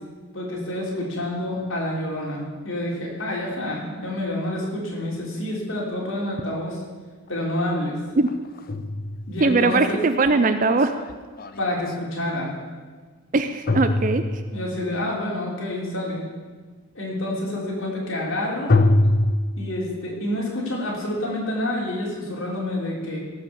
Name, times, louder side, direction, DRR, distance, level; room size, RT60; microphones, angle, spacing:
voice 1, 0.3-6.8 7.3-8.0 9.3-10.0 11.6-12.5 14.5-16.3 16.9-18.7 19.6-23.2, left 1 dB, 70° left, -3 dB, 3.6 m, -28 dB
sound 1, 7.3-7.4 8.3-11.9 13.7-14.8 18.7-19.3, left 2 dB, 45° left, 0.6 m, -23 dB
voice 2, 9.4-10.9 13.3-14.4, right 3 dB, 40° right, 9 dB, 0.4 m, -20 dB
17.5 x 6.0 x 7.0 m, 1.5 s
head